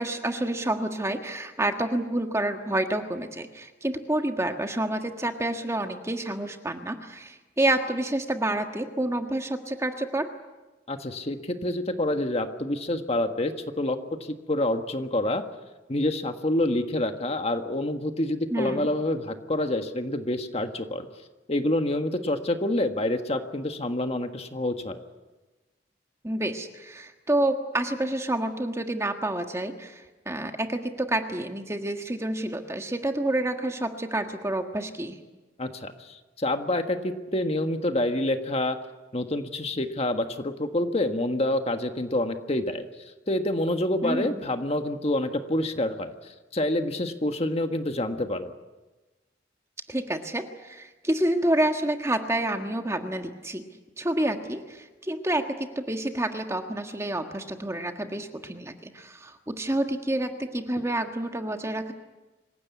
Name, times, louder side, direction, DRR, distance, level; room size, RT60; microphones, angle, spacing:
voice 1, 0.0-10.3 18.5-18.9 26.2-35.2 44.0-44.4 49.9-53.6 54.0-61.9, right 1 dB, 15° right, 5 dB, 1.5 m, -28 dB
voice 2, 10.9-15.4 15.9-21.1 21.5-25.0 35.6-38.8 39.1-42.8 43.3-48.5, left 1 dB, 35° left, 6 dB, 1.5 m, -27 dB
26.0 x 16.5 x 9.6 m, 1.2 s
head